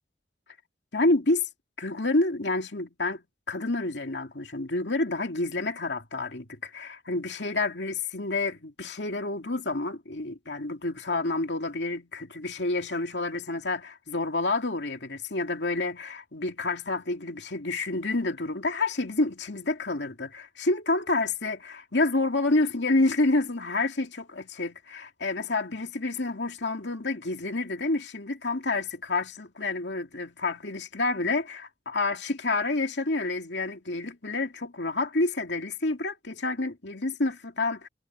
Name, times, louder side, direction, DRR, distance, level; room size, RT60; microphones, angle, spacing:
voice 1, 0.9-1.5 1.8-37.9, left 2 dB, 75° left, 2.4 m, -29 dB
head